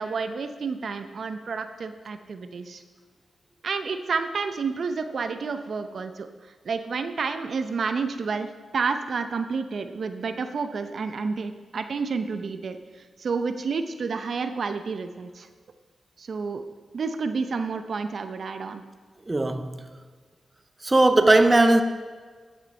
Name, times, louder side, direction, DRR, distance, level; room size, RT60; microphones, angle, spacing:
voice 1, 0.0-2.8 3.6-6.3 6.6-12.8 13.2-15.5 16.2-16.6 16.9-18.8, right 4 dB, 65° right, 0.7 m, -30 dB
voice 2, 19.3-19.8 20.8-21.8, right 2 dB, 25° right, 0.7 m, -18 dB
12.0 x 7.3 x 5.4 m
cardioid pair, 70°, 0 cm